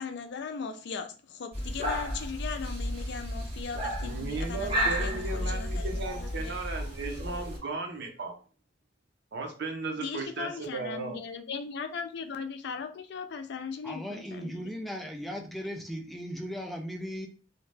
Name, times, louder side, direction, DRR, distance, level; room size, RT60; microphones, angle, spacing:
voice 1, 0.0-6.5 10.0-14.5, left 5 dB, 65° left, 0.4 m, -38 dB
sound 1, 1.5-7.6, equal, 30° right, 1.2 m, -32 dB
voice 2, 4.0-8.3 9.3-11.2, right 3 dB, 65° right, 0.6 m, -36 dB
voice 3, 13.8-17.3, equal, ahead, 0.4 m, -37 dB
2.7 x 2.1 x 3.2 m
head